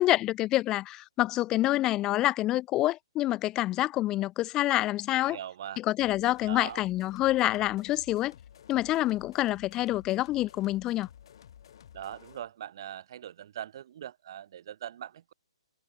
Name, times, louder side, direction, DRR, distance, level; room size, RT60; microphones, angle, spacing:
voice 1, 0.0-5.4 5.8-8.3 8.7-11.1, left 15 dB, 20° left, 1.2 m, -27 dB
voice 2, 5.2-5.8 6.5-6.8 11.9-15.3, right 10 dB, 50° right, 2.5 m, -41 dB
sound 1, 6.0-12.5, left 9 dB, 55° left, 5.8 m, -53 dB
hypercardioid pair, 150°, 3 cm